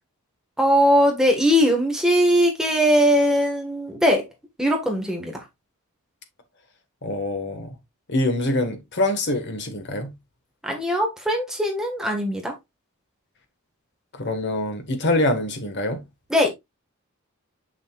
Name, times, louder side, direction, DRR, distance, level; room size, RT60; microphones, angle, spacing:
voice 1, 0.6-4.2 4.6-5.4 10.6-12.5 16.3-16.5, equal, 5° right, 1.5 m, -20 dB
voice 2, 7.0-7.7 8.1-10.1 14.2-16.0, left 1 dB, 55° left, 1.5 m, -24 dB
6.7 x 6.4 x 2.4 m
head